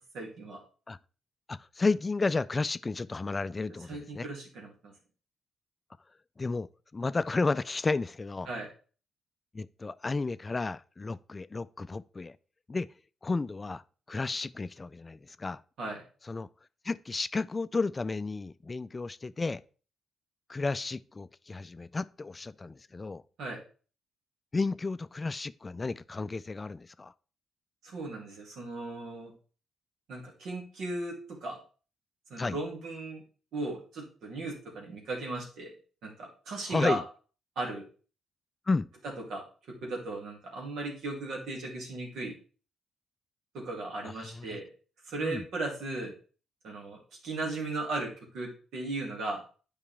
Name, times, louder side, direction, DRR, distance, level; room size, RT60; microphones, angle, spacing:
voice 1, 0.1-0.6 3.9-4.9 8.5-8.7 15.8-16.0 23.4-23.6 27.8-29.3 30.1-31.6 32.3-33.2 33.5-35.7 36.0-37.0 37.6-37.8 39.3-39.4 39.8-42.3 43.5-44.7 45.0-46.1 46.6-49.4, right 2 dB, 75° right, 2.2 m, -36 dB
voice 2, 1.5-4.3 6.4-8.5 9.5-12.4 12.7-12.9 13.2-13.8 14.1-15.6 16.3-16.5 16.8-19.6 20.5-23.2 24.5-27.1 32.4-32.6 36.7-37.0 38.7-38.9 44.0-44.6 45.2-45.4, left 3 dB, 30° left, 0.3 m, -32 dB
8.7 x 4.8 x 3.4 m
supercardioid pair, 65°, 0 cm